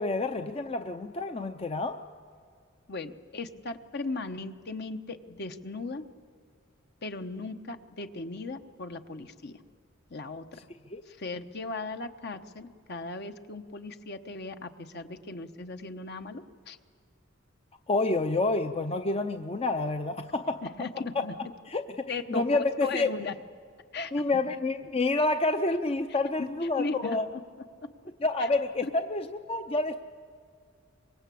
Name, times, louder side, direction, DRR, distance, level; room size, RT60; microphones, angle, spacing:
voice 1, 0.0-2.0 10.9-11.0 17.9-20.6 21.7-21.8 22.3-23.1 24.1-27.2 28.2-30.0, left 2 dB, 30° left, 7 dB, 0.6 m, -28 dB
voice 2, 2.9-6.1 7.0-9.6 10.1-10.6 11.1-16.8 20.6-21.3 22.1-23.3 23.9-24.4 26.4-26.5 26.8-27.4 27.8-27.9 28.4-28.5 28.8-28.9, left 3 dB, 55° left, 7 dB, 1.1 m, -37 dB
24.5 x 22.0 x 8.4 m, 2.3 s
head